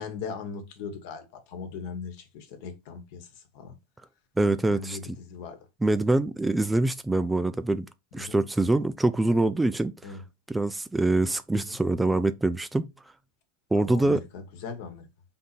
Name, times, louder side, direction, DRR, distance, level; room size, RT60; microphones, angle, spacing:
voice 1, 0.0-3.3 3.5-3.7 4.5-5.6 8.2-8.4 10.0-10.2 11.5-11.8 13.8-15.1, left 5 dB, 65° left, 1.1 m, -39 dB
voice 2, 4.4-5.0 5.8-7.9 8.1-10.2 10.5-12.9 13.7-14.2, right 2 dB, 10° right, 0.3 m, -24 dB
3.7 x 2.8 x 4.1 m
supercardioid pair, 120°, 0 cm